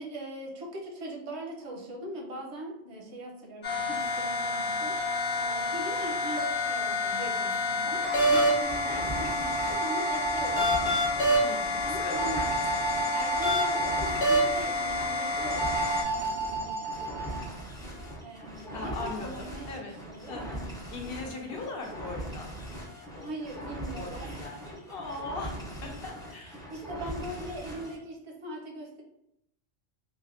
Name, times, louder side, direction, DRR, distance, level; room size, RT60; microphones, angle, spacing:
voice 1, 0.0-4.9 5.3-11.0 11.5-17.4 18.2-20.4 23.2-25.0 26.3-29.0, right 1 dB, 80° right, -1 dB, 1.0 m, -41 dB
sound 1, 3.6-16.0, left 1 dB, 35° left, 0.8 m, -28 dB
sound 2, 8.6-28.0, right 1 dB, 5° left, 0.3 m, -41 dB
sound 3, 8.9-10.8 12.1-14.1 15.5-17.5, right 3 dB, 55° right, 0.6 m, -33 dB
voice 2, 11.4-13.0 18.7-19.9 20.3-20.6 20.9-22.5 23.1-23.3 23.9-24.6 24.9-26.6, left 3 dB, 65° left, 1 dB, 0.8 m, -40 dB
3.4 x 2.4 x 2.5 m, 0.82 s
omnidirectional pair, 1.1 m